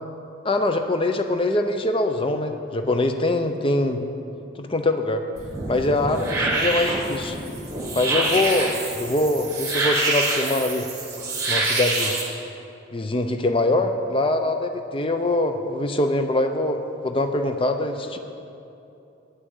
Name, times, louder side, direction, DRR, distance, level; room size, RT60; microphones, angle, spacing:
voice 1, 0.4-4.0 4.6-5.2 5.7-7.4 8.0-10.9 11.5-12.1 12.9-18.2, left 2 dB, 25° left, 7 dB, 0.5 m, -23 dB
sound 1, 5.4-12.2, right 2 dB, 15° right, 1.5 m, -26 dB
9.5 x 6.3 x 8.0 m, 2.8 s
head